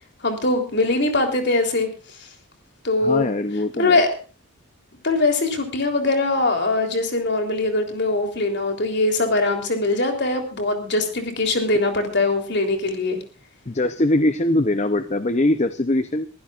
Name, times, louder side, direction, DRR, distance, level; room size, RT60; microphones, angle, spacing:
voice 1, 0.2-1.9 2.2-2.3 2.8-3.3 3.8-4.1 5.0-13.2, left 2 dB, 50° left, 4 dB, 3.5 m, -21 dB
voice 2, 3.0-4.0 13.7-16.3, left 1 dB, 30° left, 10 dB, 0.7 m, -21 dB
23.5 x 15.5 x 2.5 m, 0.36 s
head